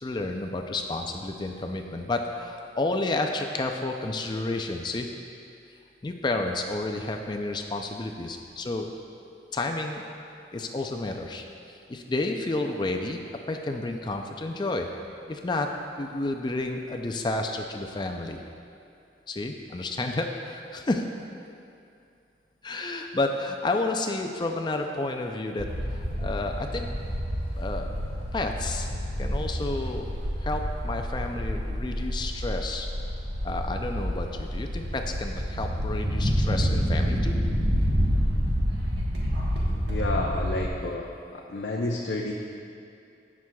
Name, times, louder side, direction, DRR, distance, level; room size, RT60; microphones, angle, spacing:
voice 1, 0.0-5.1 6.0-8.9 9.5-10.0 10.5-13.2 13.5-14.9 15.3-18.4 19.3-21.0 22.6-26.9 27.6-27.9 28.3-28.9 29.2-30.1 30.4-32.9 33.4-37.4, left 2 dB, 25° left, 4 dB, 0.4 m, -31 dB
sound 1, 25.6-40.7, equal, 75° right, 1.3 m, -28 dB
voice 2, 39.9-41.1 41.3-42.3, left 2 dB, 80° left, -1 dB, 0.6 m, -30 dB
16.5 x 6.1 x 2.3 m, 2.5 s
head